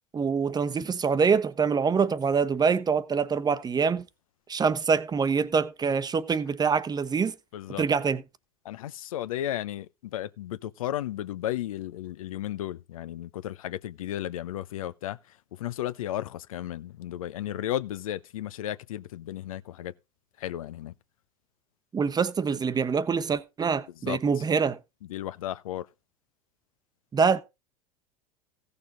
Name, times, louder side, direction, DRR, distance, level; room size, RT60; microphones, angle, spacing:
voice 1, 0.1-4.0 4.5-7.3 7.8-8.2 21.9-24.8 27.1-27.4, right 5 dB, 20° right, 1.0 m, -25 dB
voice 2, 7.5-7.8 8.6-15.2 15.5-19.9 20.4-20.9 24.0-24.2 25.0-25.9, left 12 dB, 70° left, 0.7 m, -34 dB
16.0 x 6.8 x 3.9 m
figure-of-eight pair, 80°, 18 cm